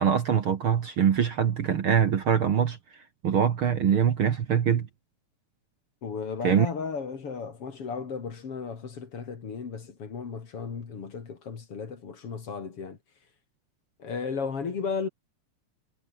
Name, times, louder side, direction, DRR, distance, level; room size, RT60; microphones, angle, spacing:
voice 1, 0.0-2.8 3.2-4.9 6.4-6.7, right 8 dB, 50° right, 1.9 m, -23 dB
voice 2, 6.0-13.0 14.0-15.1, left 5 dB, 50° left, 3.5 m, -34 dB
omnidirectional pair, 3.6 m